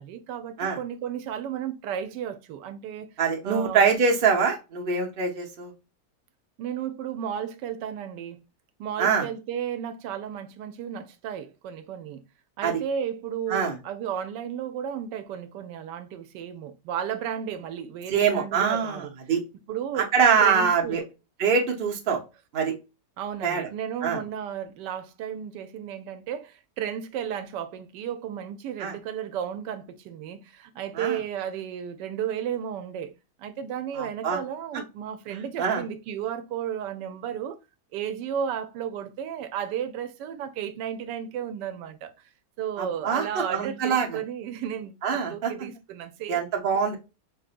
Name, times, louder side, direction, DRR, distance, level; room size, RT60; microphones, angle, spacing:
voice 1, 0.0-3.1 3.4-3.9 6.6-8.4 8.8-12.2 12.6-19.1 19.7-20.1 20.4-21.0 23.2-33.1 33.4-37.6 37.9-42.1 42.6-46.4, right 9 dB, 85° right, 1.2 m, -33 dB
voice 2, 3.2-5.7 9.0-9.3 12.6-12.8 13.5-13.8 18.1-19.4 20.0-21.0 21.4-22.2 22.5-22.7 23.4-23.6 24.0-24.2 28.8-28.9 30.9-31.2 33.9-34.4 35.3-35.8 42.8-44.2 45.0-45.5 46.3-47.0, right 6 dB, 40° right, 1.0 m, -24 dB
4.7 x 2.6 x 2.5 m
omnidirectional pair, 1.8 m